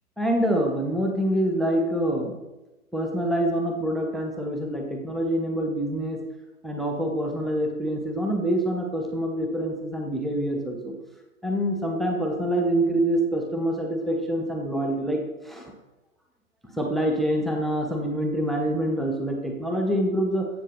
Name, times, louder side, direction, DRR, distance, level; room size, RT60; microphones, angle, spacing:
voice 1, 0.2-2.4 2.9-6.2 6.6-10.9 11.4-15.6 16.8-20.5, right 1 dB, ahead, 2 dB, 0.3 m, -26 dB
14.5 x 7.0 x 2.6 m, 1.0 s
hypercardioid pair, 145°, 44 cm